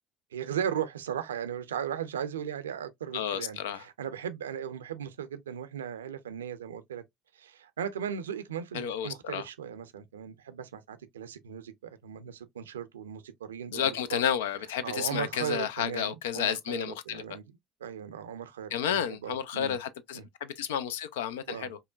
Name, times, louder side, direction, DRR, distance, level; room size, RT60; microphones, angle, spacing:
voice 1, 0.3-7.0 7.3-14.2 14.8-17.4 17.8-19.8 20.1-20.3 21.5-21.8, right 8 dB, 80° right, 0.4 m, -37 dB
voice 2, 3.1-3.8 8.7-9.4 13.7-17.2 18.7-21.8, left 9 dB, 75° left, 0.4 m, -31 dB
5.3 x 2.1 x 2.3 m
figure-of-eight pair, 60°, 0 cm